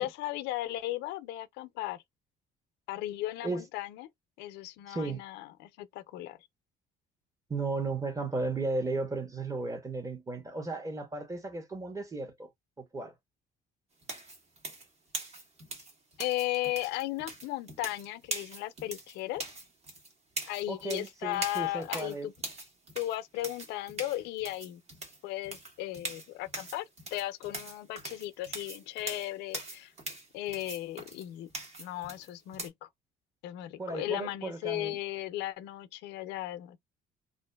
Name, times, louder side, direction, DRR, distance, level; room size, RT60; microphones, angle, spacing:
voice 1, 0.0-2.0 2.9-4.1 4.4-6.4 16.2-19.4 20.5-22.3 22.9-24.8 25.2-26.9 27.1-29.9 30.3-31.5 31.8-32.9 33.4-36.8, left 15 dB, 90° left, 0.5 m, -36 dB
voice 2, 4.9-5.2 7.5-12.5 12.8-13.1 20.7-22.3 33.8-35.0, right 3 dB, 20° right, 1.0 m, -35 dB
sound 1, 14.0-32.7, right 2 dB, 40° right, 1.3 m, -42 dB
2.6 x 2.5 x 2.2 m
cardioid pair, 110°, 17 cm